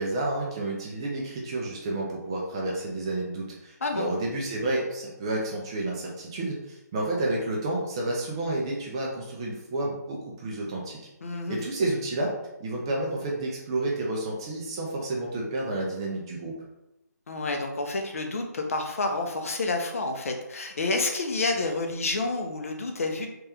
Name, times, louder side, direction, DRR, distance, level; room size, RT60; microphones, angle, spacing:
voice 1, 0.0-11.0 11.5-12.3 12.6-16.5, right 2 dB, 15° right, -2 dB, 0.4 m, -30 dB
voice 2, 3.8-4.1 11.2-11.6 17.3-23.3, left 3 dB, 50° left, 3 dB, 0.6 m, -29 dB
3.4 x 2.9 x 3.3 m, 0.90 s
hypercardioid pair, 170°, 9 cm